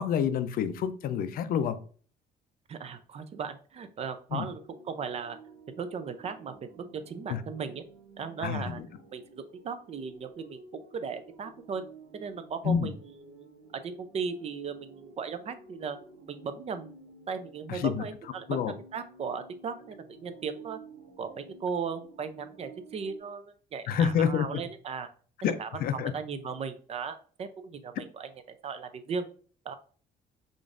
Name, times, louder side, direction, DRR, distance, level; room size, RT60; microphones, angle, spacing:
voice 1, 0.0-1.8 4.3-4.5 7.3-7.4 8.4-8.9 12.6-12.9 17.7-18.0 18.5-18.7 23.9-24.6 25.4-26.1, left 8 dB, 60° left, 11 dB, 0.4 m, -28 dB
voice 2, 2.7-4.6 4.8-5.4 5.8-7.8 8.2-8.8 9.1-11.8 12.1-13.5 13.8-16.0 16.3-16.9 17.3-20.8 21.2-23.5 23.7-25.1 25.4-29.3 29.6-29.7, right 6 dB, 40° right, 10 dB, 0.4 m, -37 dB
sound 1, 4.5-23.2, right 4 dB, 85° right, 1.1 m, -53 dB
5.0 x 2.5 x 2.4 m, 0.43 s
cardioid pair, 110°, 17 cm